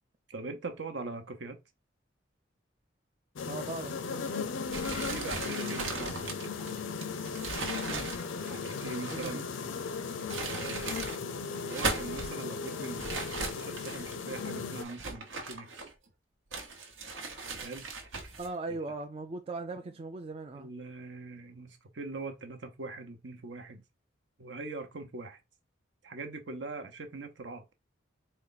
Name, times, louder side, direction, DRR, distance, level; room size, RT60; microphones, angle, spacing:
voice 1, 0.3-1.6 5.1-6.5 8.4-9.4 10.4-11.0 11.6-15.9 17.6-17.9 18.7-18.8 20.5-23.8 24.4-25.4 26.0-27.7, right 3 dB, 70° right, 0.8 m, -42 dB
sound 1, 3.4-14.8, left 5 dB, 80° left, 0.5 m, -37 dB
voice 2, 3.5-4.5 7.9-8.1 9.1-9.5 18.4-20.7, right 3 dB, 30° right, 0.3 m, -39 dB
sound 2, 4.7-9.5 10.1-11.2 11.6-12.3 13.0-14.2 14.8-16.1 16.5-18.5, right 3 dB, 90° right, 1.1 m, -38 dB
4.3 x 2.3 x 4.0 m
head